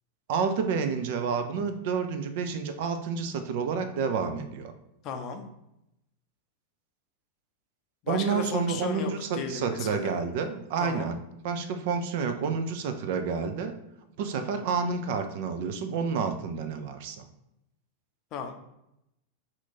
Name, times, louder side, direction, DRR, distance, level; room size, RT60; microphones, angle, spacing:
voice 1, 0.3-4.7 8.1-11.2 11.4-13.8 14.2-17.3, right 5 dB, 50° right, 8 dB, 0.4 m, -29 dB
voice 2, 5.0-5.4 8.0-10.2 10.8-11.1 18.3-18.6, left 5 dB, 35° left, 6 dB, 0.5 m, -35 dB
2.9 x 2.5 x 4.1 m, 0.83 s
figure-of-eight pair, 90°, 0 cm